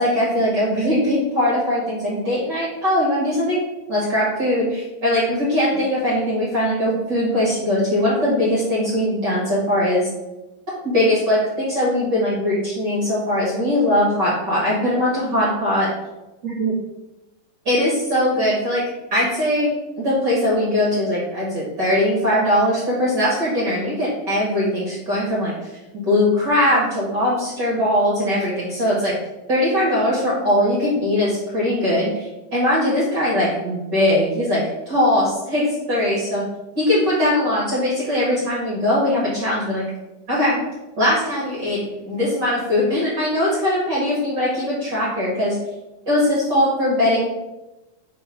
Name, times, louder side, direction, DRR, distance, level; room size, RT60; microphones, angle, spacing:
voice 1, 0.0-3.6 3.9-10.1 10.8-15.9 16.4-16.7 17.6-18.8 19.1-19.7 20.0-29.2 29.5-36.4 36.7-39.9 40.3-40.6 41.0-45.6 46.0-47.3, left 1 dB, 45° right, -7 dB, 1.5 m, -20 dB
4.7 x 4.4 x 5.7 m, 1.0 s
omnidirectional pair, 4.4 m